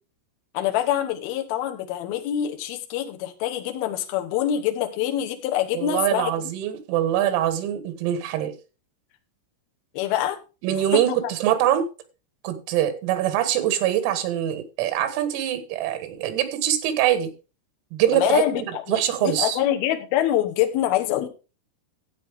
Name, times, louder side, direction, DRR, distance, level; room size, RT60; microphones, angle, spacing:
voice 1, 0.5-6.3 9.9-10.4 10.9-11.0 18.1-21.3, left 11 dB, 75° left, 6 dB, 2.3 m, -25 dB
voice 2, 5.8-8.5 10.6-11.9 12.4-17.3 17.9-18.4 18.9-19.6, right 11 dB, 90° right, 9 dB, 4.1 m, -23 dB
13.0 x 8.1 x 3.5 m, 0.32 s
omnidirectional pair, 6.0 m